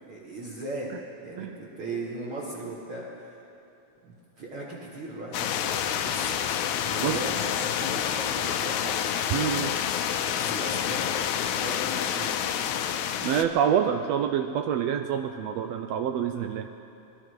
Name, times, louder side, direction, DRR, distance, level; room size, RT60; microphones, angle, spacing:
voice 1, 0.1-0.9 1.2-3.4 4.0-6.4 6.8-8.9 10.3-11.2 11.6-12.3, right 2 dB, 50° right, -6 dB, 2.3 m, -37 dB
sound 1, 5.3-13.5, left 9 dB, 80° left, 2.0 m, -28 dB
voice 2, 9.3-9.8 13.2-16.7, right 8 dB, 80° right, 6 dB, 1.5 m, -27 dB
20.5 x 12.5 x 4.7 m, 2.8 s
omnidirectional pair, 3.3 m